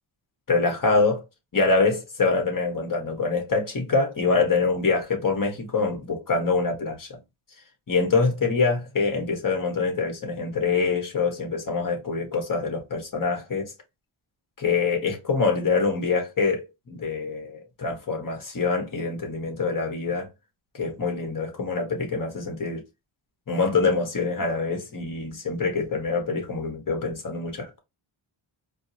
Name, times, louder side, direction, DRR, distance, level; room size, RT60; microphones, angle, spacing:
voice 1, 0.5-1.2 1.5-7.1 7.9-13.7 14.6-20.3 20.7-22.8 23.5-27.8, left 4 dB, 45° left, 1.4 m, -25 dB
4.6 x 2.0 x 2.8 m
cardioid pair, 90°, 47 cm